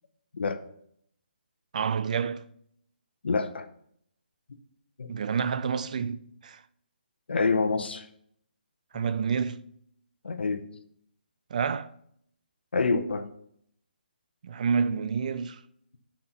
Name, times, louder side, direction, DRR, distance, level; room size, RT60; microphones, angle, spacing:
voice 1, 1.7-2.4 5.1-6.6 8.9-9.6 11.5-11.9 14.4-15.6, right 6 dB, 45° right, 0.4 m, -28 dB
voice 2, 3.2-3.7 5.0-5.1 7.3-8.1 10.2-10.7 12.7-13.3, left 4 dB, 75° left, 0.8 m, -27 dB
7.7 x 4.3 x 5.6 m
hypercardioid pair, 160°, 6 cm